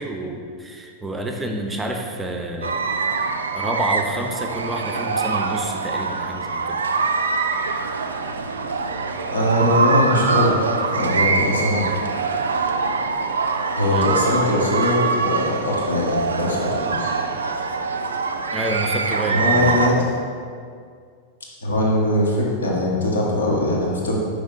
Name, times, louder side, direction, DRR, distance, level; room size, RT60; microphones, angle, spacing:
voice 1, 0.0-2.8 3.5-6.8 13.9-14.1 18.5-20.1, right 1 dB, 10° right, 2 dB, 0.6 m, -28 dB
sound 1, 2.6-19.9, right 4 dB, 70° right, 0.3 m, -24 dB
voice 2, 9.3-10.6 10.9-11.8 13.7-17.1 19.3-20.1 21.6-24.2, left 1 dB, 70° left, -2 dB, 1.0 m, -21 dB
5.2 x 4.9 x 3.8 m, 2.1 s
figure-of-eight pair, 90°, 0 cm